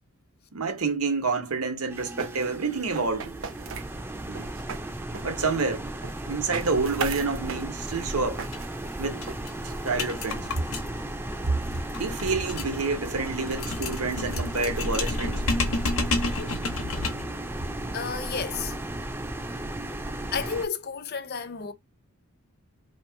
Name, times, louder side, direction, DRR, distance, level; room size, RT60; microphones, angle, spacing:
voice 1, 0.5-3.3 4.3-4.5 5.2-5.9 6.3-8.4 9.0-9.2 9.6-10.5 12.0-15.4, right 4 dB, 85° right, 1.0 m, -28 dB
sound 1, 1.9-20.7, right 1 dB, 10° right, 0.3 m, -35 dB
sound 2, 2.0-10.1, right 5 dB, 60° right, 0.6 m, -39 dB
sound 3, 8.4-8.6 8.9-9.0 9.2-17.4, left 2 dB, 65° left, 0.9 m, -31 dB
voice 2, 17.9-18.7 20.3-21.7, left 6 dB, 45° left, 0.6 m, -31 dB
2.9 x 2.8 x 4.4 m
head